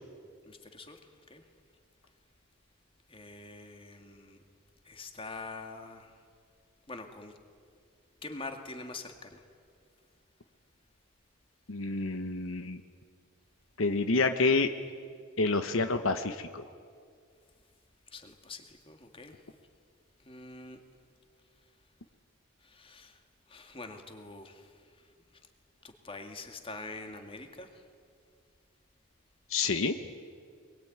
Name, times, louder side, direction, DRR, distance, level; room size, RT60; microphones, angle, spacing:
voice 1, 0.5-1.0 1.3-1.4 3.1-4.4 4.9-6.1 6.9-7.4 8.2-9.4 18.1-19.4 20.3-20.8 22.6-23.1 23.5-24.7 26.0-27.7, left 3 dB, 25° left, 5 dB, 2.1 m, -44 dB
voice 2, 11.7-12.8 13.8-14.7 15.4-16.6 29.5-29.9, left 3 dB, 70° left, 8 dB, 1.0 m, -28 dB
24.0 x 22.0 x 9.4 m, 2.2 s
head